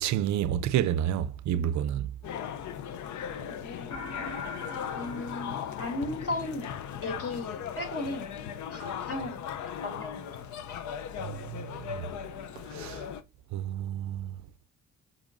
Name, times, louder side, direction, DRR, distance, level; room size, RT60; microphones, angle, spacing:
voice 1, 0.0-2.1 11.2-11.6 12.7-13.0 13.5-14.3, right 10 dB, 70° right, 0.5 m, -29 dB
sound 1, 2.2-13.2, left 8 dB, 70° left, 0.6 m, -38 dB
voice 2, 3.5-4.0 4.9-6.7 7.0-8.3 8.7-10.3, left 2 dB, 50° left, 2.7 m, -36 dB
sound 2, 3.9-6.5, left 4 dB, 90° left, 2.4 m, -41 dB
7.2 x 5.4 x 2.5 m
cardioid pair, 90°, 30 cm